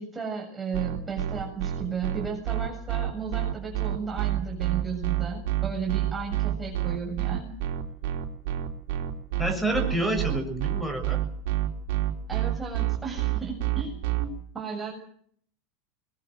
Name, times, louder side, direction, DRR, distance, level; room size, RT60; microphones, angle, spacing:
voice 1, 0.0-7.6 12.3-14.9, right 6 dB, 15° right, -1 dB, 7.1 m, -34 dB
sound 1, 0.7-14.2, right 14 dB, 65° right, 4.0 m, -27 dB
voice 2, 9.4-11.2, right 1 dB, 5° left, 9 dB, 7.0 m, -28 dB
22.0 x 21.5 x 8.0 m, 0.62 s
supercardioid pair, 115°, 0 cm